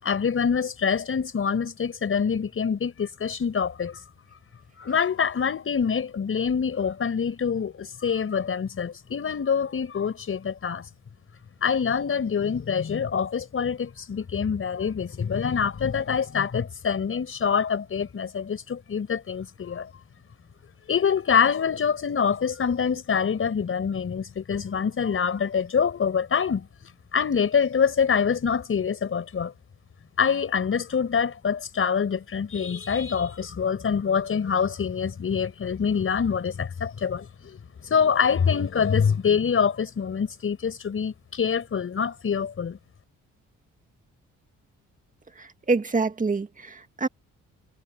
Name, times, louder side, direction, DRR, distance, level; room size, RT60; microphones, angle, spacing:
voice 1, 0.0-4.0 4.8-10.9 11.6-19.9 20.9-26.7 27.1-29.5 30.2-42.8, left 6 dB, 45° left, 5.3 m, -25 dB
voice 2, 45.4-47.1, right 3 dB, 25° right, 2.0 m, -26 dB
cardioid pair, 90°, 30 cm